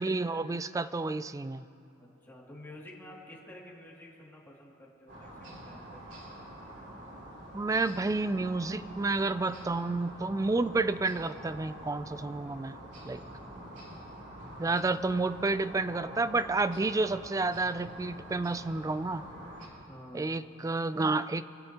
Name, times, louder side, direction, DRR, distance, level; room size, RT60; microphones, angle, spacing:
voice 1, 0.0-1.6 7.5-12.7 13.0-13.2 14.6-19.2 20.1-21.4, right 3 dB, 15° right, 14 dB, 0.3 m, -30 dB
voice 2, 2.0-6.0 19.9-20.3, left 1 dB, 10° left, -5 dB, 2.5 m, -50 dB
sound 1, 5.1-19.7, right 1 dB, 60° right, 3.0 m, -46 dB
25.5 x 16.0 x 2.9 m, 2.7 s
head